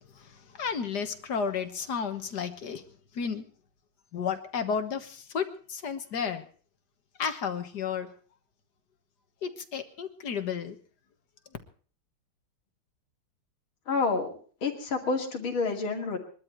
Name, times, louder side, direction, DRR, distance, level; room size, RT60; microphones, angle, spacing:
voice 1, 0.6-2.8 3.1-3.5 4.1-6.4 7.2-8.1 9.4-10.8, left 6 dB, 55° left, 8 dB, 1.8 m, -32 dB
voice 2, 13.9-14.3 14.6-16.2, left 4 dB, 70° left, 3 dB, 3.2 m, -28 dB
22.0 x 12.5 x 4.5 m, 0.43 s
omnidirectional pair, 2.3 m